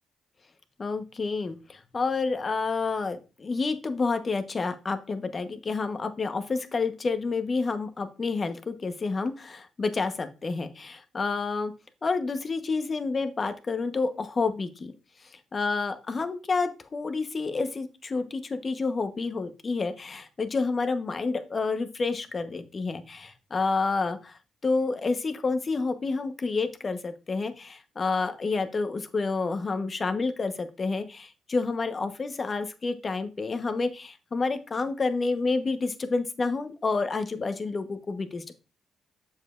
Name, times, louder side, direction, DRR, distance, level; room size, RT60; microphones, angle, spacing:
voice 1, 0.8-11.7 12.0-14.9 15.5-38.5, left 4 dB, 40° left, 9 dB, 1.0 m, -29 dB
7.3 x 6.9 x 2.5 m, 0.31 s
cardioid pair, 70°, 0 cm